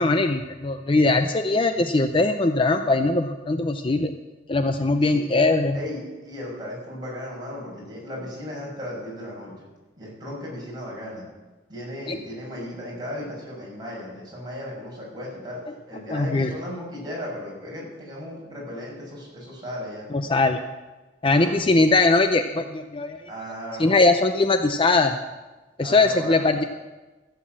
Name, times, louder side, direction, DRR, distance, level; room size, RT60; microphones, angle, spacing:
voice 1, 0.0-4.1 4.5-5.8 12.1-12.2 16.1-16.5 20.1-20.6 21.2-23.2 23.8-25.2 25.8-26.6, left 3 dB, 30° left, 7 dB, 0.5 m, -21 dB
voice 2, 5.7-9.7 10.0-11.3 11.7-15.6 15.9-20.1 21.2-22.0 23.3-24.0 25.8-26.5, left 1 dB, 25° right, -4 dB, 6.1 m, -36 dB
15.0 x 8.2 x 7.5 m, 1.2 s
head